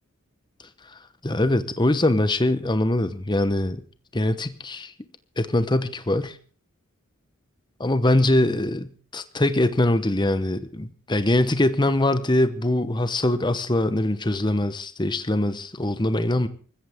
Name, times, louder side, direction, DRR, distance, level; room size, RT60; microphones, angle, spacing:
voice 1, 1.2-3.8 4.1-4.9 5.4-6.4 7.8-16.5, left 1 dB, 20° left, 12 dB, 0.9 m, -22 dB
24.0 x 14.5 x 3.6 m, 0.40 s
head